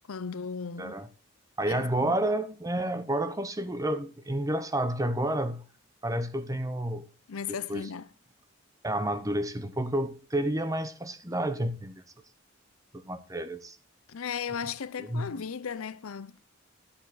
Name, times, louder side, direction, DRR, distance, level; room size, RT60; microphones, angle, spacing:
voice 1, 0.1-0.9 1.7-2.2 7.3-8.1 14.1-16.4, left 6 dB, 85° left, 0.6 m, -36 dB
voice 2, 1.6-5.6 6.0-7.1 7.5-7.9 8.8-12.0 12.9-13.8 15.0-15.4, right 1 dB, 15° right, 0.8 m, -30 dB
11.5 x 6.9 x 4.1 m
head